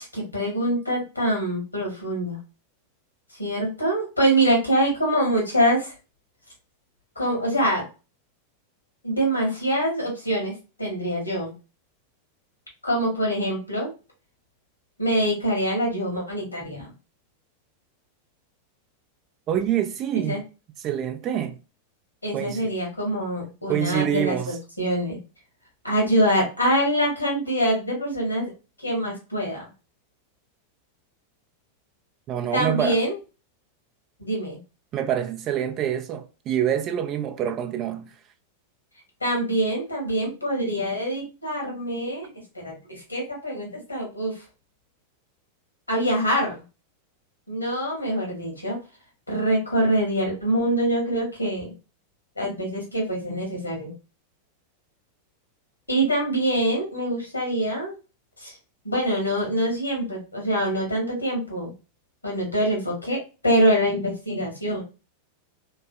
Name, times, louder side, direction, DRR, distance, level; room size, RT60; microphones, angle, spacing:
voice 1, 0.0-2.4 3.4-5.9 7.1-7.8 9.0-11.5 12.8-13.9 15.0-16.9 20.2-20.4 22.2-25.2 25.8-28.4 28.8-29.7 32.5-33.1 34.2-34.6 39.2-44.3 45.9-46.6 47.5-48.8 49.3-51.7 52.4-53.9 55.9-57.9 58.4-58.5 58.8-61.7 62.2-64.8, right 1 dB, 80° left, 1.6 m, -25 dB
voice 2, 19.5-20.4 20.8-21.6 22.3-22.7 23.7-24.6 32.3-33.0 34.9-38.1, right 10 dB, 35° right, 0.4 m, -26 dB
3.4 x 3.2 x 2.2 m
figure-of-eight pair, 90°, 0 cm